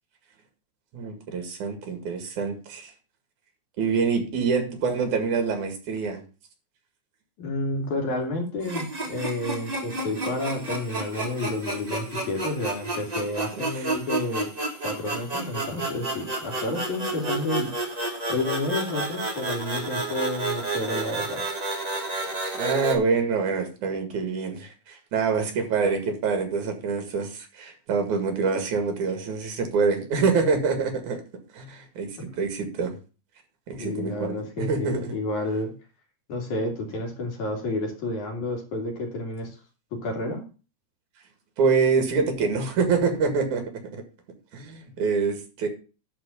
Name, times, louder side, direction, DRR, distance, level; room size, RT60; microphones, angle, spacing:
voice 1, 0.9-2.9 3.8-6.2 13.8-13.9 22.5-31.2 31.5-33.0 33.7-35.2 41.6-44.0 44.5-45.7, right 5 dB, 70° right, 5 dB, 3.3 m, -26 dB
voice 2, 7.4-14.5 14.8-17.7 18.3-21.4 33.8-35.7 36.3-39.5 40.0-40.4, left 2 dB, 70° left, 1 dB, 3.8 m, -30 dB
sound 1, 8.6-23.0, right 2 dB, 20° right, 1.1 m, -31 dB
11.5 x 4.3 x 7.0 m, 0.34 s
omnidirectional pair, 3.6 m